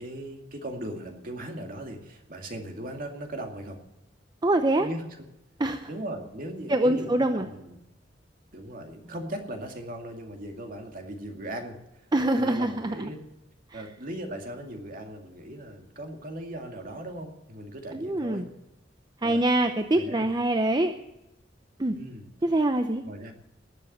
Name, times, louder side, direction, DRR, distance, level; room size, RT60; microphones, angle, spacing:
voice 1, 0.0-3.8 4.8-5.0 5.9-7.8 8.5-12.1 12.4-13.2 13.7-18.5 19.2-19.4 19.9-20.3 21.9-22.3 23.1-23.3, right 1 dB, 50° right, 3 dB, 2.3 m, -38 dB
voice 2, 4.4-4.9 5.6-5.9 6.7-7.5 12.1-13.1 13.7-13.8 17.9-18.5 19.2-20.9 21.8-22.0 22.4-23.0, right 1 dB, 25° right, 7 dB, 0.7 m, -24 dB
19.5 x 7.5 x 8.0 m, 0.92 s
head